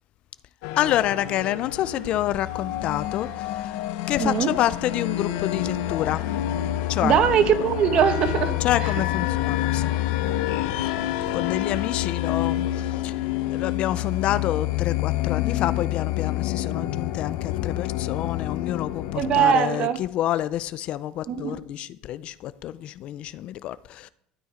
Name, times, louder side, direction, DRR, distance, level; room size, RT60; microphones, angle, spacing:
sound 1, 0.6-19.4, left 14 dB, 75° left, 0.8 m, -28 dB
voice 1, 0.8-3.7 4.1-6.2 6.9-7.2 8.6-9.9 10.2-10.3 11.3-13.1 13.5-24.1, left 13 dB, 40° left, 0.4 m, -28 dB
voice 2, 4.2-4.5 7.0-8.6 19.1-20.0 21.3-21.6, right 8 dB, 35° right, 1.0 m, -21 dB
sound 2, 5.3-5.7 6.3-6.7 7.3-7.6 8.3-8.6 9.3-9.6 10.3-10.6 11.3-11.5 12.3-12.5, right 6 dB, 60° right, 2.0 m, -45 dB
12.5 x 9.3 x 5.0 m
cardioid pair, 170°, 3 cm